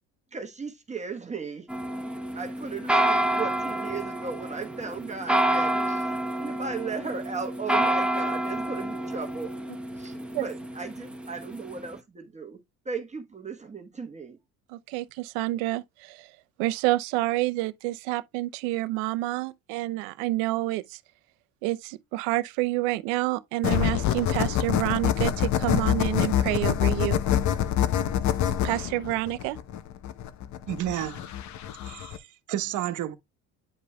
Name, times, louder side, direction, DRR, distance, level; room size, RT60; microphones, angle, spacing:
voice 1, 0.3-1.7 2.3-9.5 10.0-12.6 12.8-14.4, right 5 dB, 20° right, 1.3 m, -36 dB
sound 1, 1.7-11.9, right 1 dB, 5° right, 1.0 m, -28 dB
voice 2, 14.7-16.3 16.6-21.0 21.6-27.2 28.6-29.6, right 18 dB, 90° right, 0.7 m, -28 dB
sound 2, 23.6-32.2, left 10 dB, 55° left, 0.9 m, -26 dB
voice 3, 30.7-31.3 31.8-33.2, right 12 dB, 60° right, 1.2 m, -31 dB
9.9 x 5.0 x 2.3 m
supercardioid pair, 95°, 34 cm